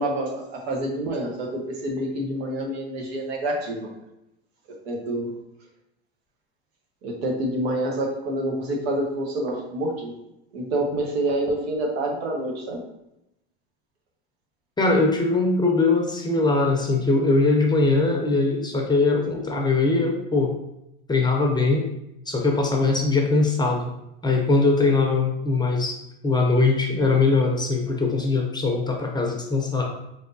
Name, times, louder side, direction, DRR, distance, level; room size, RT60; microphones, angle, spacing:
voice 1, 0.0-3.9 4.8-5.3 7.0-10.1 10.5-12.8, right 1 dB, 75° right, 0 dB, 1.2 m, -27 dB
voice 2, 14.8-20.5 21.1-21.9 22.3-23.9 24.2-26.0 26.2-29.9, left 3 dB, 15° left, 1 dB, 0.7 m, -21 dB
4.2 x 3.4 x 2.6 m, 0.85 s
hypercardioid pair, 100°, 32 cm